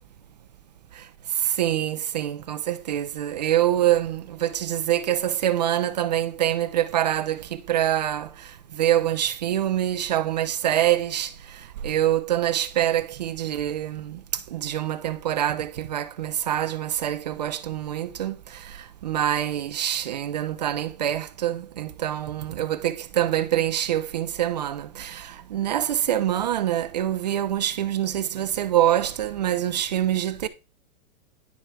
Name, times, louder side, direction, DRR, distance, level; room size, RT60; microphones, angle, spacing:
voice 1, 1.4-8.3 8.8-11.3 11.8-14.2 14.5-18.4 18.6-18.8 19.0-30.5, right 12 dB, 30° right, 0.4 m, -25 dB
10.5 x 4.8 x 4.5 m
hypercardioid pair, 145°, 43 cm